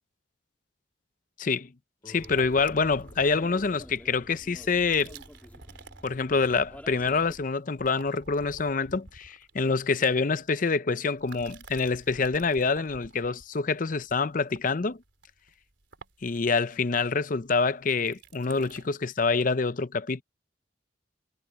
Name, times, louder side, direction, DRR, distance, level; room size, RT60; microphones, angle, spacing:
voice 1, 1.4-1.7 2.1-5.2 6.0-15.0 16.2-20.2, left 4 dB, 45° left, 0.6 m, -26 dB
Guitar, 2.0-6.8, left 1 dB, 25° left, 5.9 m, -56 dB
sound 1, 2.1-7.5, equal, 10° left, 1.9 m, -49 dB
sound 2, 2.2-4.0 4.7-6.7 7.0-7.4 7.6-10.6 11.1-18.9, right 3 dB, 75° right, 3.5 m, -51 dB
head